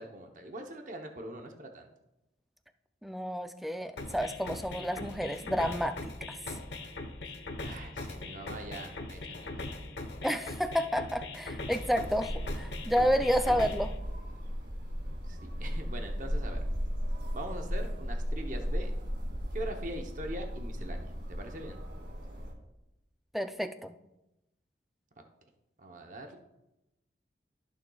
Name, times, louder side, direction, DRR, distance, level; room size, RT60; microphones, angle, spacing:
voice 1, 0.0-1.9 7.2-7.3 7.6-9.6 15.2-16.6 17.3-18.9 19.5-21.8 25.8-26.4, right 1 dB, 45° right, 3 dB, 0.8 m, -42 dB
voice 2, 3.0-6.1 10.2-13.9 23.3-23.9, equal, ahead, 8 dB, 0.3 m, -30 dB
sound 1, 4.0-14.0, left 2 dB, 70° left, 1.0 m, -41 dB
sound 2, 11.8-22.5, equal, 60° right, 1.9 m, -36 dB
14.5 x 6.6 x 2.3 m, 0.93 s
head